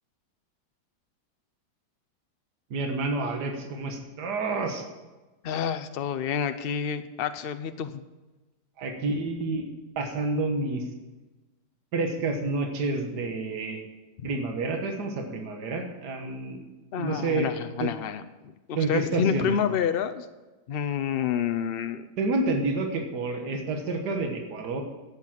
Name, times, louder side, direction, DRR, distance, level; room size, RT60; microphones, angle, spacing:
voice 1, 2.7-4.8 8.8-10.9 11.9-13.8 14.2-16.6 16.9-17.5 17.8-17.9 18.8-19.6 21.0-21.2 22.2-24.8, right 3 dB, 70° right, 4 dB, 1.9 m, -29 dB
voice 2, 5.4-8.0 16.9-18.2 18.7-20.3 20.7-22.1, left 8 dB, 80° left, 9 dB, 0.5 m, -28 dB
12.0 x 8.9 x 7.5 m, 1.1 s
omnidirectional pair, 1.8 m